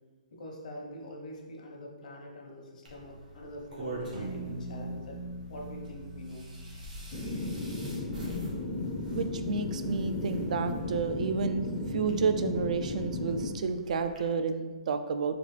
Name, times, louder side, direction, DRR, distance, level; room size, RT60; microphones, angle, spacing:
voice 1, 0.3-5.2 5.5-6.4 6.7-6.9, left 1 dB, 75° left, 0 dB, 1.0 m, -45 dB
sound 1, 2.8-14.2, right 1 dB, 90° right, 1.4 m, -47 dB
sound 2, 4.1-8.6, right 1 dB, 45° right, 0.9 m, -42 dB
sound 3, 7.1-13.5, left 2 dB, 20° left, 0.5 m, -35 dB
voice 2, 9.1-15.4, right 5 dB, 65° right, 9 dB, 0.3 m, -31 dB
4.0 x 3.1 x 3.3 m, 1.3 s
hypercardioid pair, 155°, 4 cm